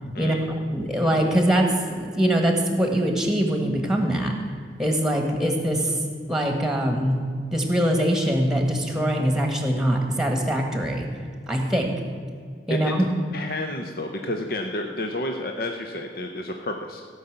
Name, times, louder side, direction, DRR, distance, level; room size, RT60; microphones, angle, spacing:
voice 1, 0.1-0.5 12.7-13.1 13.3-17.0, left 1 dB, 55° left, 3 dB, 0.8 m, -30 dB
voice 2, 0.7-4.3 4.8-5.9 6.3-7.2 7.5-11.1 11.5-11.9 12.7-13.0, right 1 dB, 5° right, 3 dB, 1.5 m, -23 dB
16.0 x 5.6 x 8.1 m, 2.1 s
head